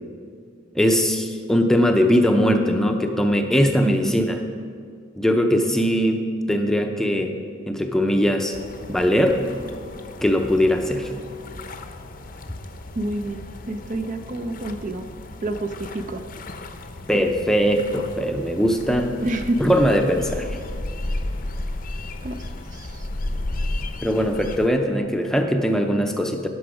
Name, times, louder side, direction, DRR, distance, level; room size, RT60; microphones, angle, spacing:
voice 1, 0.7-4.4 5.2-7.3 7.7-8.5 8.9-9.4 10.2-11.1 17.1-19.2 19.6-20.6 24.0-26.5, equal, ahead, 4 dB, 0.6 m, -20 dB
voice 2, 3.8-4.2 12.9-15.1 15.4-16.2 17.1-17.3 19.2-19.6 22.2-22.4 22.7-23.1, right 1 dB, 40° right, 7 dB, 0.5 m, -28 dB
sound 1, 8.5-24.7, left 2 dB, 45° left, 0.7 m, -34 dB
17.5 x 6.0 x 4.9 m, 2.2 s
head